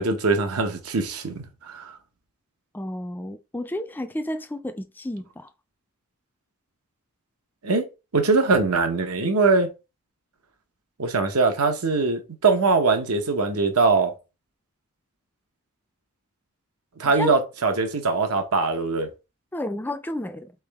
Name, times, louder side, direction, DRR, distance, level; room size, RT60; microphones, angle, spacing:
voice 1, 0.0-1.9 7.6-7.9 8.1-9.7 11.0-14.1 17.0-19.1, right 3 dB, 85° right, 0.9 m, -22 dB
voice 2, 2.7-5.5 17.2-17.4 19.5-20.5, left 1 dB, 10° left, 0.3 m, -31 dB
4.2 x 3.4 x 3.4 m
head